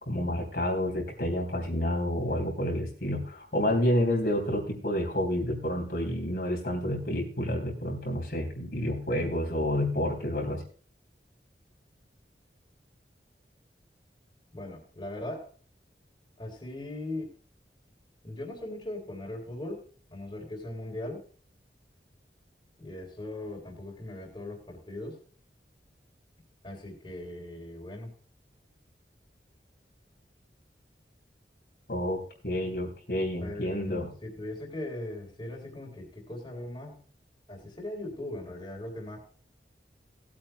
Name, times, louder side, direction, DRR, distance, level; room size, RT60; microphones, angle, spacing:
voice 1, 0.1-10.6 31.9-34.1, left 1 dB, 60° left, 0 dB, 3.3 m, -29 dB
voice 2, 14.5-15.5 16.4-17.3 18.2-19.8 20.1-21.2 22.8-25.2 26.6-28.1 33.4-37.0 37.5-39.2, left 1 dB, 30° left, -1 dB, 3.2 m, -39 dB
19.5 x 8.9 x 2.2 m, 0.43 s
head